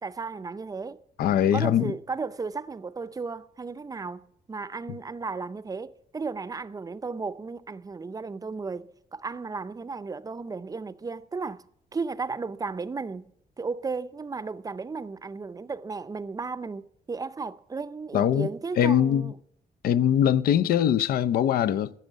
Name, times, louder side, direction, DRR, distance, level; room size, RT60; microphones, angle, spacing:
voice 1, 0.0-1.0 1.5-11.6 11.9-13.3 13.6-19.4, right 4 dB, 25° right, 0.5 m, -34 dB
voice 2, 1.2-1.9 18.1-18.5 18.8-19.3 19.8-21.9, left 10 dB, 85° left, 0.5 m, -22 dB
15.0 x 6.3 x 9.0 m
cardioid pair, 120°, 15 cm